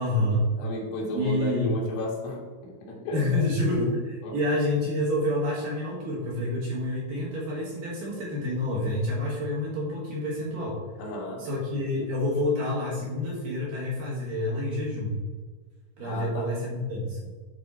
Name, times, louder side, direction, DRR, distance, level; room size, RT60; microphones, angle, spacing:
voice 1, 0.0-0.5 1.1-1.7 3.1-10.8 11.4-15.2 16.0-17.3, left 1 dB, 60° right, -4 dB, 2.7 m, -28 dB
voice 2, 0.6-3.2 4.2-4.4 5.2-5.3 11.0-11.4 16.0-16.5, left 1 dB, 85° left, -2 dB, 4.3 m, -34 dB
11.0 x 4.1 x 4.3 m, 1.4 s
omnidirectional pair, 5.4 m